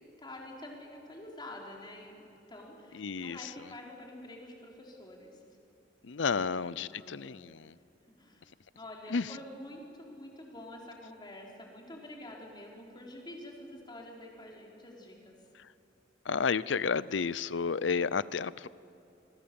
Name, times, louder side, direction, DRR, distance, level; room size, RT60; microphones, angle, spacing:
voice 1, 0.0-5.4 6.3-7.4 8.2-8.4 8.7-15.3, left 1 dB, 25° left, -2 dB, 4.6 m, -48 dB
voice 2, 2.9-3.5 6.0-7.8 9.1-9.3 15.6-15.7 16.2-18.7, left 5 dB, 85° left, 18 dB, 0.6 m, -31 dB
26.5 x 23.0 x 7.2 m, 2.8 s
head